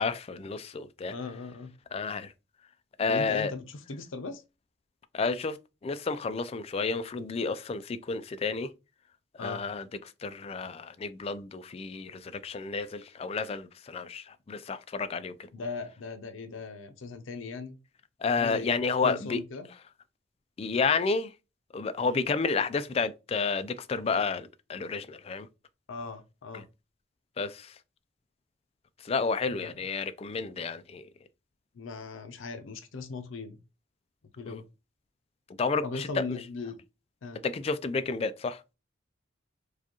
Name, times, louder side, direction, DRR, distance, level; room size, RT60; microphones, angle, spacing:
voice 1, 0.0-1.1 1.9-2.3 3.0-3.5 5.1-5.6 5.8-8.7 9.3-9.9 10.2-15.3 18.2-19.4 20.6-21.3 21.7-25.5 26.5-26.6 27.4-27.8 29.0-31.1 34.5-34.6 35.6-36.4 37.4-38.6, left 4 dB, 30° left, 0.3 m, -31 dB
voice 2, 1.1-1.7 3.1-4.4 9.4-9.6 15.5-17.8 18.3-18.7 19.0-19.7 22.1-22.2 25.9-26.6 29.5-29.7 31.7-33.6 34.4-34.7 35.8-36.8 37.2-37.4, left 4 dB, 85° left, 0.6 m, -38 dB
4.7 x 2.3 x 2.9 m
head